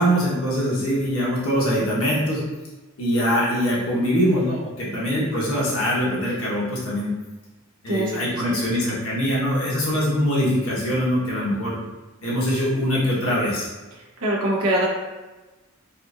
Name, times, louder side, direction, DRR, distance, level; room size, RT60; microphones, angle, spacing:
voice 1, 0.0-2.4 3.0-7.1 7.8-11.8 12.2-13.7, equal, 80° left, -6 dB, 1.2 m, -23 dB
voice 2, 4.9-5.3 7.9-8.4 14.2-14.9, right 1 dB, 90° right, -5 dB, 1.0 m, -24 dB
4.2 x 2.5 x 2.5 m, 1.2 s
head